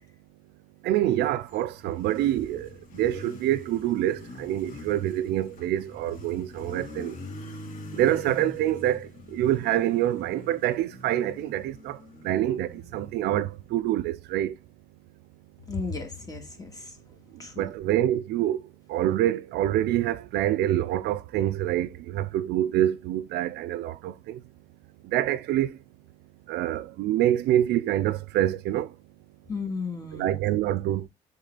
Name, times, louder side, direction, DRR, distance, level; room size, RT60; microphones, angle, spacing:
voice 1, 0.8-7.2 7.9-14.6 17.3-24.4 25.0-25.8 26.5-29.0 30.1-31.1, right 12 dB, 75° right, 0.5 m, -26 dB
Motorcycle, 1.1-13.8, left 2 dB, 50° left, 2.4 m, -44 dB
voice 2, 15.7-17.0 17.4-17.7 29.5-30.7, left 4 dB, 20° left, 2.2 m, -35 dB
7.4 x 3.7 x 4.0 m
cardioid pair, 110°, 17 cm